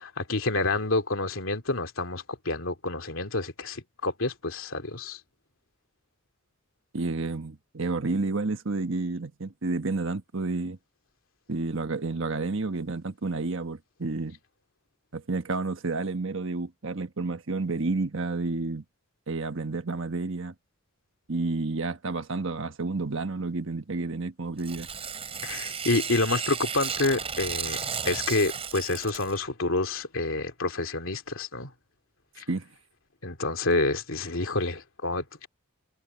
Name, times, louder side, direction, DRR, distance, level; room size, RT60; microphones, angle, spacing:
voice 1, 0.0-5.2 25.4-27.8 28.0-31.7 32.4-32.5 33.2-35.5, left 2 dB, 70° left, 2.9 m, -28 dB
voice 2, 6.9-10.8 11.5-14.4 15.1-18.8 19.3-20.5 21.3-24.9 32.5-32.7, right 3 dB, 65° right, 1.3 m, -30 dB
Tearing, 24.6-29.4, right 6 dB, 30° right, 4.2 m, -34 dB
head